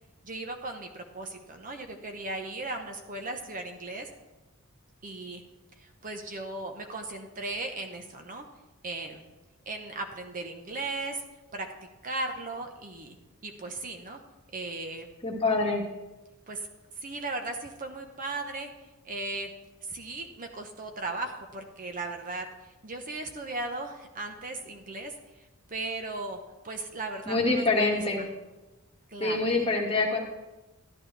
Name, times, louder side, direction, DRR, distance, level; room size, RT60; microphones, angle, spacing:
voice 1, 0.2-4.1 5.0-5.4 5.8-8.5 8.8-9.2 9.7-11.2 11.5-11.7 12.0-13.2 13.4-14.2 14.5-15.1 16.5-16.7 17.0-18.7 19.0-19.5 19.8-25.1 25.7-26.4 26.6-28.0 29.1-29.4, right 2 dB, 40° right, 4 dB, 0.9 m, -37 dB
voice 2, 15.2-15.8 27.3-28.3 29.2-30.2, left 3 dB, 25° left, -1 dB, 1.8 m, -25 dB
12.5 x 11.5 x 3.3 m, 1.1 s
head